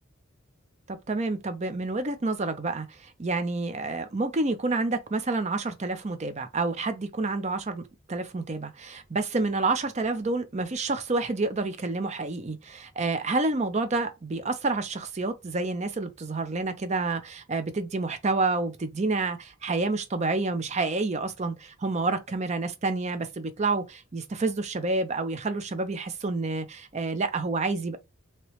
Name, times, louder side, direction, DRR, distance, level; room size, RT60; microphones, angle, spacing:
voice 1, 0.9-7.8 8.1-28.0, right 3 dB, 30° right, 0.5 m, -29 dB
3.1 x 2.9 x 2.9 m
head